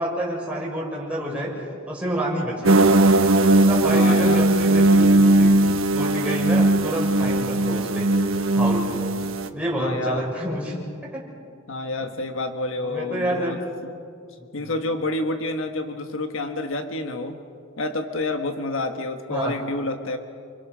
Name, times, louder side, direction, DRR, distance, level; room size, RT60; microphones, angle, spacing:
voice 1, 0.0-1.5 1.9-2.7 3.7-5.6 5.9-8.1 8.5-8.9 9.5-10.8 11.1-11.2 12.8-13.5 14.5-14.7 19.3-19.5, right 1 dB, 5° right, -5 dB, 6.9 m, -28 dB
sound 1, 2.6-9.5, right 2 dB, 80° right, 1.3 m, -18 dB
voice 2, 3.9-4.4 9.7-10.3 11.7-13.6 14.5-17.4 17.8-20.2, left 2 dB, 70° left, 6 dB, 1.6 m, -28 dB
29.0 x 25.5 x 6.4 m, 2.3 s
head